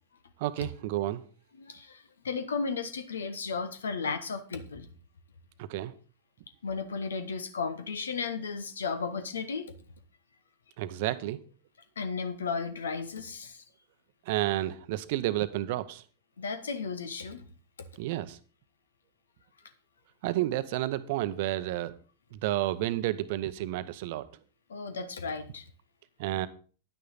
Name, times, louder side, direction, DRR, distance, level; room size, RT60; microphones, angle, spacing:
voice 1, 0.4-1.2 5.6-5.9 10.8-11.4 14.3-16.0 18.0-18.4 20.2-21.9 22.3-24.3 26.2-26.5, right 15 dB, 50° right, 14 dB, 0.8 m, -31 dB
voice 2, 1.6-4.9 6.6-9.7 12.0-13.6 16.4-17.4 24.7-25.6, left 5 dB, 70° left, 11 dB, 1.1 m, -34 dB
10.5 x 9.5 x 4.0 m, 0.39 s
figure-of-eight pair, 90°, 0 cm